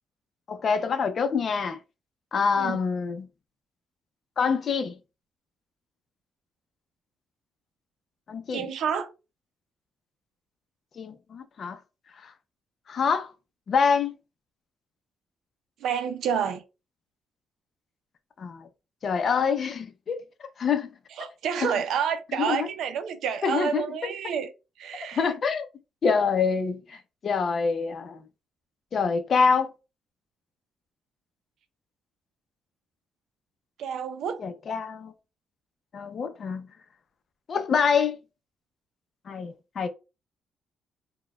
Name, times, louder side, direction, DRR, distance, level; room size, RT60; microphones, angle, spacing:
voice 1, 0.5-1.8 2.3-3.3 4.4-4.9 8.3-8.7 11.0-11.8 12.2-12.3 12.9-13.3 13.7-14.1 18.4-18.7 19.0-20.2 20.6-20.9 21.6-21.7 22.3-22.7 23.4-23.8 25.2-25.7 26.0-28.2 28.9-29.7 34.4-35.1 35.9-36.7 37.5-38.2 39.3-39.9, left 5 dB, 50° left, 0.5 m, -26 dB
voice 2, 8.5-9.1 15.8-16.6 21.2-24.5 24.8-25.3 33.8-34.4, right 7 dB, 75° right, 0.5 m, -29 dB
4.0 x 2.2 x 2.2 m
cardioid pair, 90°, 0 cm